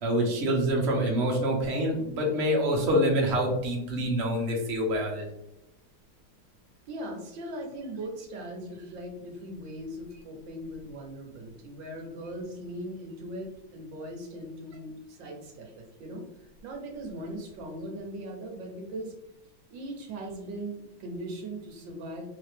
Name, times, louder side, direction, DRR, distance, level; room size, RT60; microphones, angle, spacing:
voice 1, 0.0-5.3, equal, 50° right, -1 dB, 0.9 m, -26 dB
voice 2, 6.9-19.1 19.7-22.3, right 1 dB, 70° right, 2 dB, 1.4 m, -39 dB
3.9 x 2.8 x 3.2 m, 0.88 s
omnidirectional pair, 2.2 m